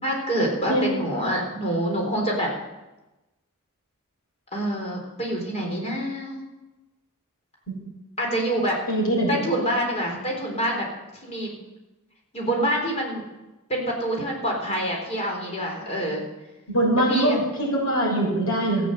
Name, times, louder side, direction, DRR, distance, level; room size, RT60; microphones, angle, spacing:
voice 1, 0.0-2.5 4.5-6.4 8.2-8.8 9.3-10.9 11.2-11.5 12.3-13.2 13.7-16.2 17.1-17.4, right 1 dB, 30° left, -1 dB, 4.0 m, -26 dB
voice 2, 8.9-9.3 16.7-18.9, right 1 dB, 80° left, -3 dB, 6.9 m, -22 dB
14.5 x 8.8 x 8.1 m, 1.0 s
head